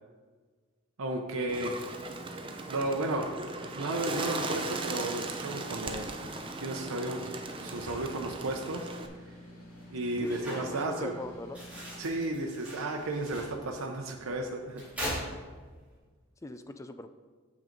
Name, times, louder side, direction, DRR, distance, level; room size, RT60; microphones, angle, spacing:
voice 1, 1.0-1.8 2.7-3.3 3.8-6.1 6.6-7.3 7.6-8.9 9.9-11.1 12.0-14.8, right 2 dB, 90° right, 2 dB, 0.7 m, -33 dB
sound 1, 1.2-11.9, equal, 80° left, 2.3 m, -50 dB
Bird, 1.5-9.1, right 3 dB, 25° right, 0.6 m, -38 dB
sound 2, 7.5-16.0, equal, 5° right, 2.9 m, -43 dB
voice 2, 10.2-11.6 16.4-17.1, left 2 dB, 15° left, 9 dB, 0.3 m, -41 dB
7.3 x 6.3 x 5.1 m, 1.5 s
head